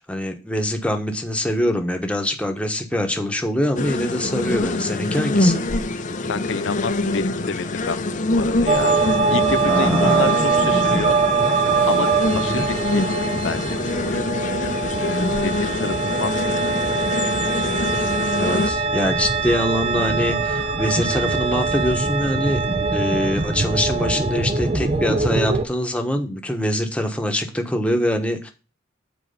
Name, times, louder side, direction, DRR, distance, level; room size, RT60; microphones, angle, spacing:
voice 1, 0.0-5.6 9.7-10.4 12.4-12.7 18.4-22.7 22.9-28.5, equal, 5° left, 1.2 m, -24 dB
sound 1, 3.8-18.7, left 2 dB, 40° left, 0.8 m, -25 dB
voice 2, 6.3-8.9 9.3-11.2 11.9-16.7, left 5 dB, 75° left, 0.5 m, -29 dB
sound 2, 8.7-25.7, right 4 dB, 30° right, 0.7 m, -22 dB
7.9 x 4.6 x 6.8 m
head